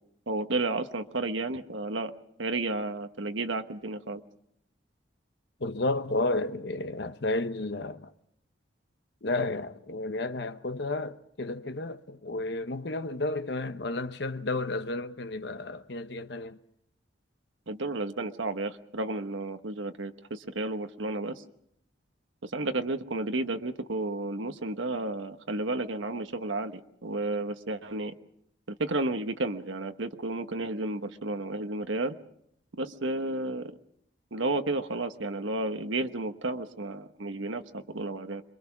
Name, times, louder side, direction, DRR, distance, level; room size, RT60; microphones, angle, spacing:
voice 1, 0.3-2.1 2.4-4.2 17.7-21.4 22.4-28.1 28.8-32.2 32.8-33.7 34.3-38.4, right 2 dB, 85° right, 1.2 m, -32 dB
voice 2, 5.6-8.1 9.2-16.6, left 2 dB, 65° left, 0.9 m, -32 dB
27.0 x 22.5 x 6.0 m
head